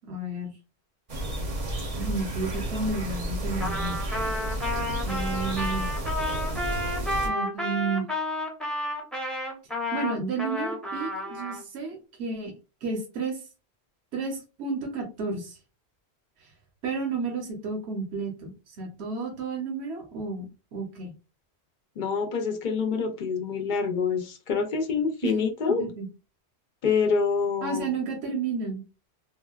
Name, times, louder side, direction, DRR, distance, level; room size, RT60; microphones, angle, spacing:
voice 1, 0.1-0.6 1.9-4.0 5.0-5.9 7.2-8.0 9.9-12.5 12.8-13.4 14.1-15.6 16.4-16.5 16.8-21.1 25.2-25.3 25.8-26.1 27.6-28.8, right 4 dB, 80° right, 1.0 m, -32 dB
sound 1, 1.1-7.3, right 1 dB, 40° right, 0.6 m, -31 dB
Trumpet, 3.6-11.6, left 1 dB, ahead, 0.6 m, -31 dB
voice 2, 22.0-25.8 26.8-27.9, left 5 dB, 55° left, 0.6 m, -26 dB
3.7 x 2.1 x 2.3 m
omnidirectional pair, 1.1 m